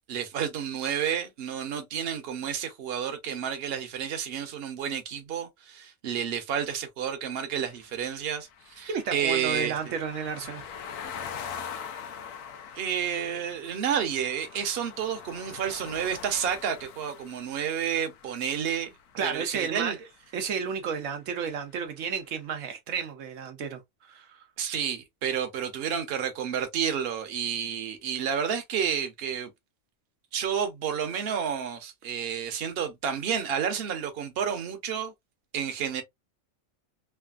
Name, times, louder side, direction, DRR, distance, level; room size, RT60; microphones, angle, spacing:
voice 1, 0.1-9.8 12.8-18.9 19.2-20.0 24.6-29.5 30.3-35.1 35.5-36.0, right 8 dB, 55° right, 0.9 m, -30 dB
sound 1, 7.6-19.6, left 7 dB, 85° left, 1.0 m, -43 dB
voice 2, 8.9-10.6 19.1-19.9 20.3-24.4, right 6 dB, 80° right, 1.0 m, -32 dB
3.3 x 2.4 x 2.3 m
omnidirectional pair, 1.3 m